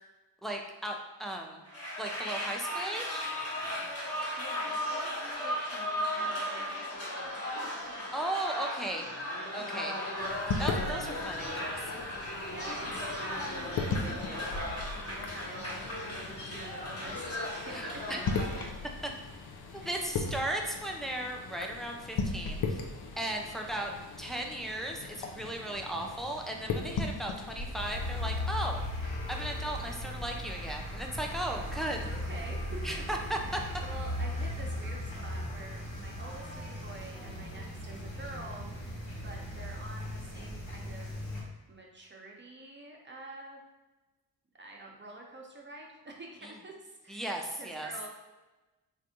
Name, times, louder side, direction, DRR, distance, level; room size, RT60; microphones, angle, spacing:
voice 1, 0.4-1.6 2.0-3.3 8.1-9.1 9.5-9.9 10.6-11.8 17.7-18.2 19.8-22.8 23.2-23.9 24.2-28.8 29.3-32.1 32.8-33.6 46.4-46.5 47.1-47.9, right 1 dB, ahead, 1 dB, 0.5 m, -36 dB
sound 1, 1.7-18.7, left 1 dB, 30° left, 1.2 m, -36 dB
voice 2, 4.4-7.4 7.6-8.1 9.6-9.9 12.2-18.2 19.8-20.1 23.5-24.0 32.1-33.3 33.8-39.0 39.2-41.1 41.4-43.6 44.6-47.3 47.6-48.1, right 2 dB, 25° right, 0 dB, 0.8 m, -47 dB
sound 2, 10.2-28.4, left 4 dB, 55° left, 0.6 m, -38 dB
sound 3, 27.8-41.4, left 1 dB, 70° left, 1.3 m, -37 dB
3.3 x 2.6 x 2.7 m, 1.1 s
supercardioid pair, 40°, 46 cm